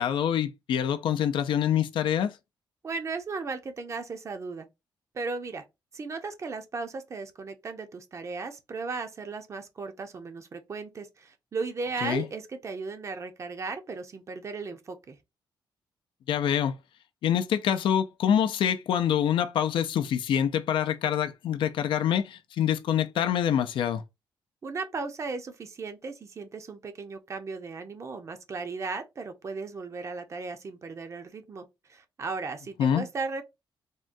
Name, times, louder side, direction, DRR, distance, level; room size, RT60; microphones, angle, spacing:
voice 1, 0.0-2.3 12.0-12.2 16.3-16.8 17.2-24.0 32.8-33.0, left 9 dB, 80° left, 0.4 m, -26 dB
voice 2, 2.8-4.7 5.1-5.6 5.9-15.2 24.6-33.4, right 4 dB, 35° right, 0.5 m, -36 dB
3.6 x 2.2 x 2.5 m
cardioid pair, 135°, 8 cm